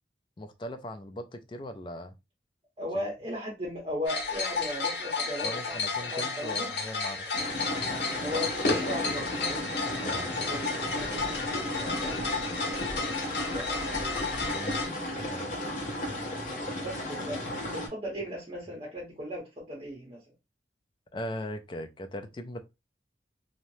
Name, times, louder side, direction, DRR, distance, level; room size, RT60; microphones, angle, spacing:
voice 1, 0.4-2.1 5.4-7.3 10.0-10.3 14.5-14.8 15.3-15.4 21.1-22.6, left 1 dB, 25° left, 0.3 m, -39 dB
voice 2, 2.8-5.8 6.1-6.7 8.2-9.7 10.0-14.0 16.8-20.2, left 1 dB, 30° right, 0.7 m, -37 dB
sound 1, 4.1-14.9, left 4 dB, 65° left, 1.0 m, -32 dB
sound 2, 7.3-17.9, left 1 dB, 45° left, 0.8 m, -35 dB
3.1 x 2.0 x 2.6 m
head